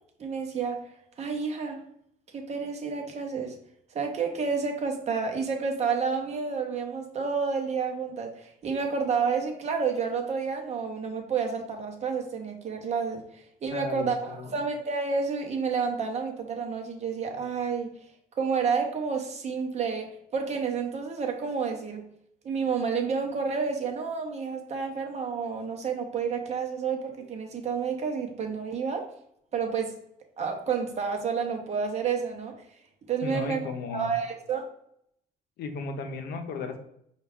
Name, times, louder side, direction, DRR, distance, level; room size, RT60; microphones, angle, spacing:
voice 1, 0.2-0.9 1.2-1.8 2.3-3.6 3.9-17.9 18.4-22.0 22.4-29.1 29.5-29.9 30.4-32.5 33.1-34.6, right 5 dB, 40° right, 3 dB, 0.7 m, -30 dB
voice 2, 13.7-14.6 33.2-34.2 35.6-36.8, left 4 dB, 70° left, 5 dB, 0.6 m, -35 dB
4.4 x 2.3 x 3.4 m, 0.72 s
cardioid pair, 110°, 17 cm